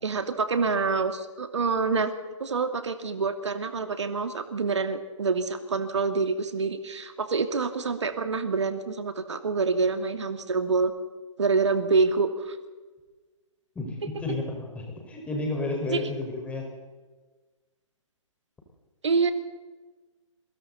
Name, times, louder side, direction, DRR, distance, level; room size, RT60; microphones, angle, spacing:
voice 1, 0.0-2.1 2.4-10.9 11.4-12.6 15.9-16.0 19.0-19.3, right 4 dB, 60° right, 8 dB, 2.3 m, -26 dB
voice 2, 13.7-16.6, left 2 dB, 10° left, 0 dB, 5.0 m, -31 dB
30.0 x 23.5 x 4.1 m, 1.3 s
figure-of-eight pair, 125°, 17 cm